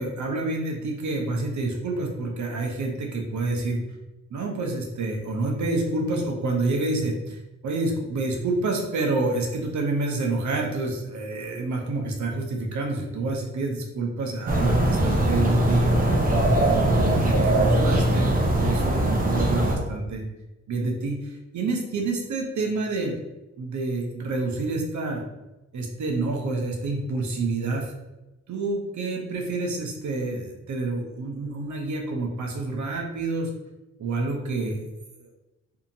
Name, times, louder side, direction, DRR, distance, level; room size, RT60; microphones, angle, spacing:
voice 1, 0.0-3.8 4.3-15.9 16.3-18.3 18.6-20.2 20.7-23.2 23.6-25.2 25.7-27.9 28.5-33.5 34.0-34.9 35.2-35.3, right 2 dB, 75° right, 1 dB, 0.7 m, -28 dB
sound 1, 14.5-19.8, right 1 dB, 30° right, 0.6 m, -21 dB
2.7 x 2.4 x 2.6 m, 1.0 s
cardioid pair, 65°, 29 cm